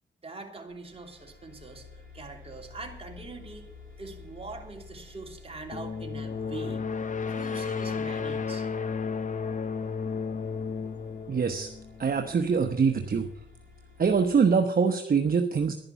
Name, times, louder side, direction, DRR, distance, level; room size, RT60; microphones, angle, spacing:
voice 1, 0.2-3.7 4.0-6.9 7.3-8.7, right 3 dB, 30° right, 2 dB, 3.0 m, -43 dB
sound 1, 0.7-14.4, left 4 dB, 70° left, 3.9 m, -52 dB
sound 2, 5.7-12.4, left 5 dB, 40° left, 1.0 m, -33 dB
voice 2, 11.3-11.7 12.0-13.3 14.0-15.7, right 5 dB, 45° right, 5 dB, 1.1 m, -24 dB
11.5 x 10.5 x 7.0 m, 0.78 s
cardioid pair, 75°, 20 cm